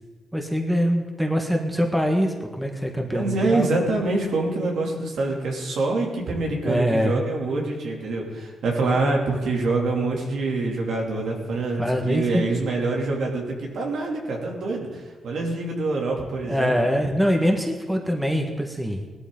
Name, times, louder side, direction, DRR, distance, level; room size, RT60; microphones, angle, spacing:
voice 1, 0.3-3.7 6.6-7.1 11.6-12.7 16.4-19.0, equal, 5° right, 2 dB, 1.7 m, -24 dB
voice 2, 3.1-16.7, right 3 dB, 75° right, -1 dB, 3.0 m, -25 dB
18.5 x 12.5 x 4.0 m, 1.3 s
cardioid pair, 85°, 0 cm